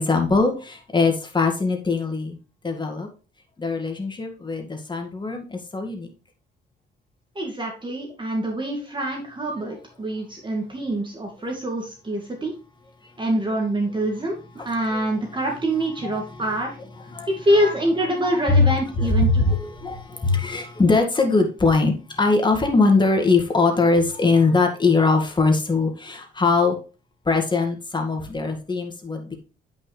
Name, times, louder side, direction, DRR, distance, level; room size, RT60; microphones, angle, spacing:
voice 1, 0.0-2.4 2.6-3.1 3.6-6.1 14.6-15.1 16.0-16.5 17.0-17.8 18.5-18.6 19.0-26.8 27.3-29.4, left 3 dB, 20° left, 4 dB, 1.9 m, -21 dB
voice 2, 7.4-12.5 13.2-14.4 14.6-16.8 17.3-19.6, right 1 dB, 25° right, 0 dB, 2.3 m, -25 dB
8.7 x 5.7 x 3.3 m, 0.35 s
cardioid pair, 90°, 20 cm